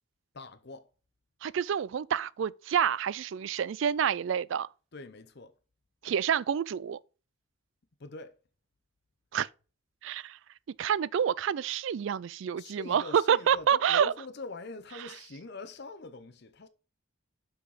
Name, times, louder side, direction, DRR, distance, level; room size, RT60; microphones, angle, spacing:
voice 1, 0.3-0.9 4.9-5.5 8.0-8.3 12.6-16.7, left 3 dB, 50° left, 0.7 m, -44 dB
voice 2, 1.4-4.7 6.0-7.0 9.3-9.5 10.0-10.4 10.8-14.1, right 8 dB, 65° right, 0.3 m, -28 dB
5.9 x 5.8 x 4.8 m
head